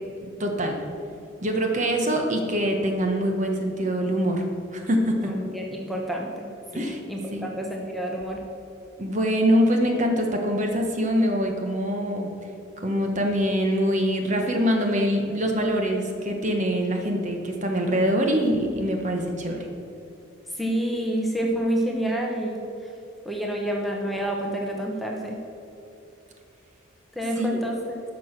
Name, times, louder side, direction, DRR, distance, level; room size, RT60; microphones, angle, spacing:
voice 1, 0.4-0.8 1.4-4.4 4.7-5.3 6.7-7.0 7.3-7.5 9.0-12.3 12.8-19.7 27.4-27.5, equal, 35° right, 3 dB, 1.1 m, -24 dB
voice 2, 5.2-6.5 6.7-8.4 20.6-22.6 23.2-25.4 27.2-28.0, right 1 dB, ahead, -1 dB, 1.0 m, -28 dB
11.5 x 6.2 x 6.0 m, 2.7 s
head